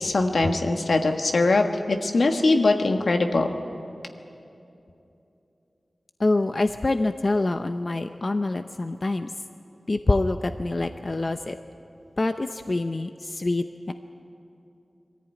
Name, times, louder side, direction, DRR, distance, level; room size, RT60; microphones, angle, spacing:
voice 1, 0.0-3.5, left 2 dB, 85° left, 4 dB, 1.4 m, -22 dB
voice 2, 6.2-9.3 9.9-11.6 12.2-13.9, left 2 dB, 45° left, 8 dB, 0.6 m, -25 dB
22.0 x 14.5 x 9.2 m, 2.8 s
wide cardioid pair, 80°, 0 cm